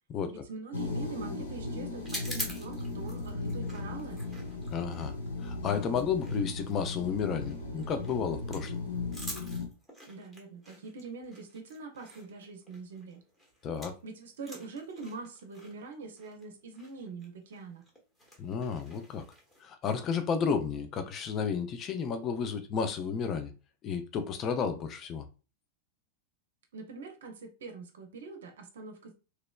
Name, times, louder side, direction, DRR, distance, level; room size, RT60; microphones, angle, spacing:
voice 1, 0.3-4.2 10.1-13.2 14.0-17.8 26.7-29.1, right 4 dB, 60° right, 0.6 m, -44 dB
sound 1, 0.7-9.7, left 3 dB, 75° left, 0.8 m, -37 dB
sound 2, 2.0-14.1 14.3-19.6, equal, 5° left, 1.0 m, -46 dB
voice 2, 4.7-5.1 5.4-8.8 13.6-13.9 18.4-19.2 19.6-23.5 23.8-25.3, left 6 dB, 30° left, 0.4 m, -32 dB
3.0 x 2.9 x 2.2 m
figure-of-eight pair, 90°, 0 cm